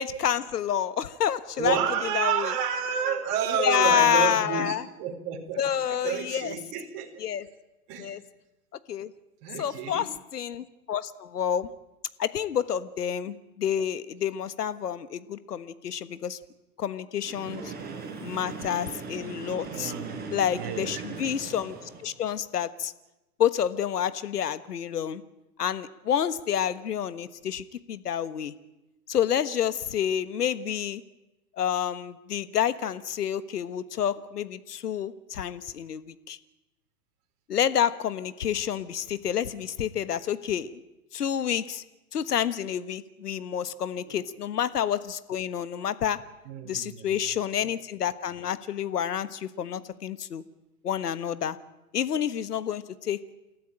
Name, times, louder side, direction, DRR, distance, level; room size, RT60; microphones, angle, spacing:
voice 1, 0.0-1.8 2.1-2.5 3.6-4.8 5.6-6.5 7.2-7.5 8.0-8.2 8.9-9.1 9.6-11.7 12.2-16.4 16.8-17.7 18.2-19.9 20.3-22.9 23.4-25.2 25.6-28.5 29.1-31.0 31.6-36.4 37.5-40.8 41.1-41.8 42.1-46.2 46.6-50.4 50.8-51.6 51.9-53.2, left 9 dB, 80° left, 14 dB, 1.5 m, -28 dB
voice 2, 1.6-7.1 7.9-8.2 9.4-10.1 19.7-21.2 44.1-44.2 46.4-47.3, right 8 dB, 45° right, 1 dB, 4.5 m, -30 dB
Train, 17.2-22.2, right 5 dB, 20° right, 6.0 m, -39 dB
29.0 x 14.5 x 8.9 m, 0.96 s
hypercardioid pair, 115°, 46 cm